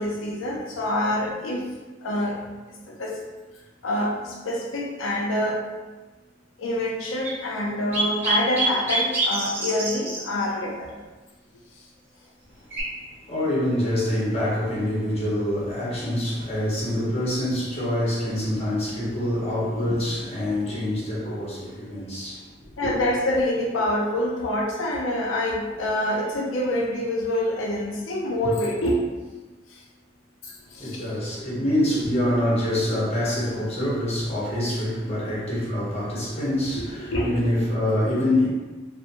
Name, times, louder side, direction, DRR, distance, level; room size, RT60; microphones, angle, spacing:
voice 1, 0.0-1.6 2.0-2.4 2.9-3.2 3.8-5.6 6.6-10.9 19.8-19.9 22.8-29.1 29.7-29.8 30.4-31.1 36.8-37.4, left 1 dB, 85° left, 0.5 m, -26 dB
sound 1, 7.2-7.3 7.9-10.2 12.7-12.8, right 2 dB, 10° right, 0.9 m, -25 dB
voice 2, 13.3-22.5 22.8-22.9 30.8-38.5, left 1 dB, 35° left, 0.9 m, -25 dB
2.7 x 2.1 x 2.5 m
head